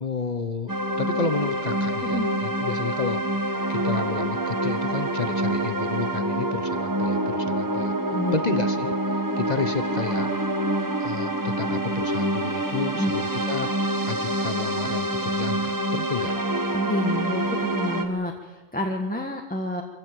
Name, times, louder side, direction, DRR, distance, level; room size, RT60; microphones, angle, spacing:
voice 1, 0.0-3.2 3.7-7.9 8.3-10.3 11.0-13.7 14.1-16.3, left 4 dB, 35° left, 11 dB, 0.9 m, -31 dB
sound 1, 0.7-18.0, right 1 dB, 15° right, 1.4 m, -26 dB
voice 2, 2.0-2.3 8.1-8.4 13.0-13.1 16.7-19.8, left 1 dB, 5° left, 2 dB, 1.5 m, -29 dB
25.0 x 16.0 x 7.8 m, 1.3 s
omnidirectional pair, 1.5 m